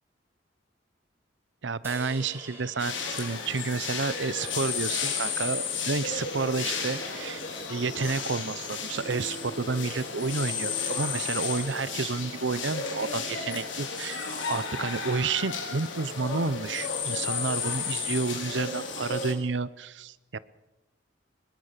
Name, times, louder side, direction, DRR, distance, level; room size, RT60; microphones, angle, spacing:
voice 1, 1.6-7.4 7.7-20.4, right 4 dB, 70° right, 18 dB, 0.8 m, -30 dB
sound 1, 1.8-5.3, right 2 dB, 15° right, 3.5 m, -47 dB
sound 2, 2.8-19.3, left 5 dB, 80° left, 3.9 m, -33 dB
22.5 x 21.0 x 6.7 m, 0.97 s
head